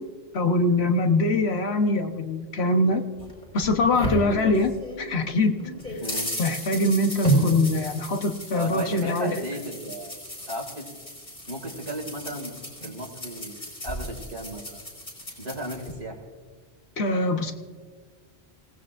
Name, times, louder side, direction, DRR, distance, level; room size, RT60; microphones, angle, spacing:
voice 1, 0.3-3.0 3.5-5.7 6.4-9.4 17.0-17.5, left 2 dB, 75° left, 5 dB, 1.4 m, -23 dB
sound 1, 3.2-5.0 5.4-15.9, right 1 dB, 55° left, 5.3 m, -32 dB
voice 2, 6.0-6.3 8.5-10.1 10.5-10.9 11.5-13.5 13.8-14.8 15.4-16.2, right 1 dB, 80° right, 2 dB, 2.6 m, -35 dB
26.5 x 17.0 x 2.6 m, 1.5 s
omnidirectional pair, 1.1 m